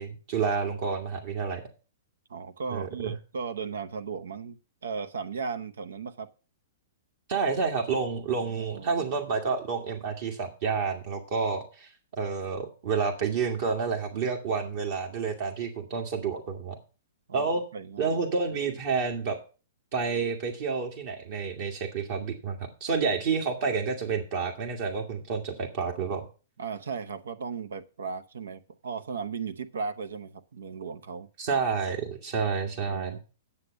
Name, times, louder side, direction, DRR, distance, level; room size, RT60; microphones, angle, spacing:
voice 1, 0.0-1.6 2.7-3.1 7.3-11.9 12.2-16.8 17.3-17.6 18.0-19.4 19.9-26.2 31.4-33.2, right 5 dB, 55° right, 2 dB, 1.9 m, -29 dB
voice 2, 2.3-4.6 4.8-6.3 8.4-9.2 17.3-18.2 26.6-31.3 32.8-33.2, right 5 dB, 75° right, 10 dB, 0.8 m, -36 dB
9.6 x 7.1 x 6.2 m, 0.35 s
hypercardioid pair, 115°, 0 cm